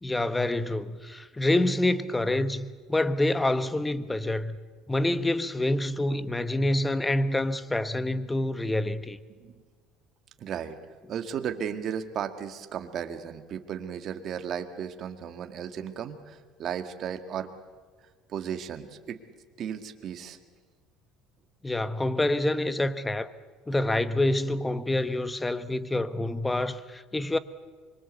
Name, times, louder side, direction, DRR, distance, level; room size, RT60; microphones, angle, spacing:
voice 1, 0.0-4.6 4.9-9.2 21.6-23.3 23.7-27.4, left 1 dB, 10° left, 1.0 m, -27 dB
voice 2, 10.4-10.8 11.1-17.5 18.3-19.2 19.6-20.4, right 8 dB, 45° right, 1.8 m, -35 dB
25.0 x 23.0 x 8.1 m
cardioid pair, 140°, 0 cm